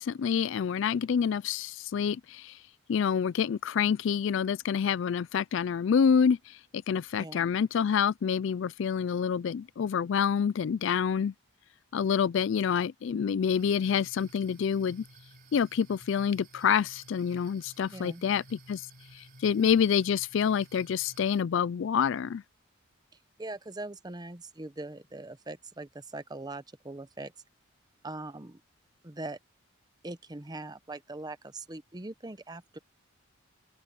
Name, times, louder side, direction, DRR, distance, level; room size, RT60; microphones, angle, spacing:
voice 1, 0.0-2.6 2.9-6.6 6.9-11.3 11.9-15.0 15.5-18.9 19.1-22.4, left 7 dB, 60° left, 0.3 m, -27 dB
sound 1, 13.5-21.4, right 1 dB, 45° right, 5.7 m, -54 dB
voice 2, 17.9-18.2 23.4-27.3 28.0-28.6 29.0-29.4 30.0-32.8, right 2 dB, 20° right, 0.8 m, -41 dB
open air
head